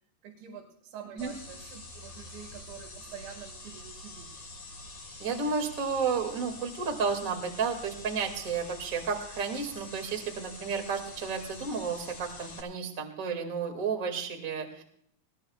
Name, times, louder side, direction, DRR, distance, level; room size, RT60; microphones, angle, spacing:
voice 1, 0.2-4.3, right 8 dB, 80° right, -1 dB, 4.1 m, -46 dB
sound 1, 1.2-12.6, left 2 dB, 35° left, 4.7 m, -46 dB
voice 2, 5.2-14.8, right 5 dB, 30° right, 3 dB, 1.5 m, -32 dB
20.5 x 17.5 x 2.4 m, 0.67 s
omnidirectional pair, 5.1 m